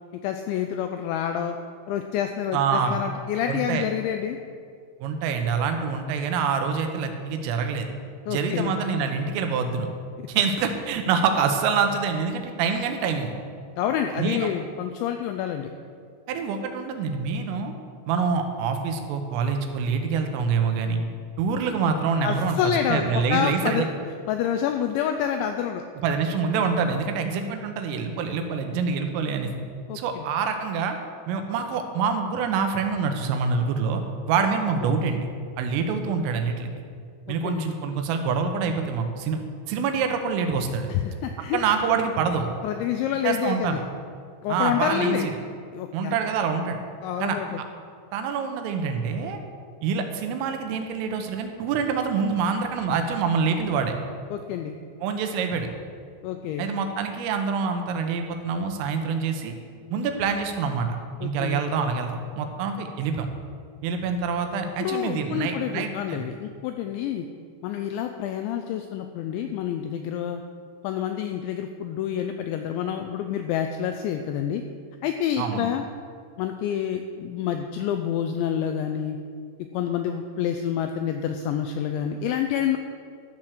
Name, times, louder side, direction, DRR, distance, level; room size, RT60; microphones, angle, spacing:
voice 1, 0.2-1.6 1.9-4.4 8.3-8.7 13.8-15.7 22.2-23.9 24.3-25.8 29.9-30.3 35.0-35.1 37.3-37.7 40.9-41.6 42.6-43.8 44.4-45.3 45.7-46.2 47.0-47.6 54.3-54.7 56.2-56.7 61.2-61.6 64.8-67.3 67.6-70.4 70.8-74.6 75.0-75.8 76.4-79.2 79.7-82.8, left 9 dB, 90° left, 6 dB, 2.6 m, -28 dB
voice 2, 2.5-3.0 3.5-3.8 5.0-7.9 8.3-9.9 10.3-13.3 14.2-14.5 16.3-17.7 18.1-21.0 21.4-23.9 26.0-29.5 30.0-31.0 31.3-34.0 34.3-35.3 35.6-36.7 37.3-39.4 39.7-40.9 41.5-42.5 43.3-43.8 44.5-45.3 45.9-46.8 47.2-47.4 48.1-49.4 49.8-54.0 55.0-55.7 56.6-59.6 59.9-61.0 61.2-63.3 63.8-66.3 75.4-75.7, right 5 dB, 85° right, 6 dB, 3.5 m, -26 dB
13.0 x 7.6 x 6.5 m, 2.2 s
omnidirectional pair, 5.8 m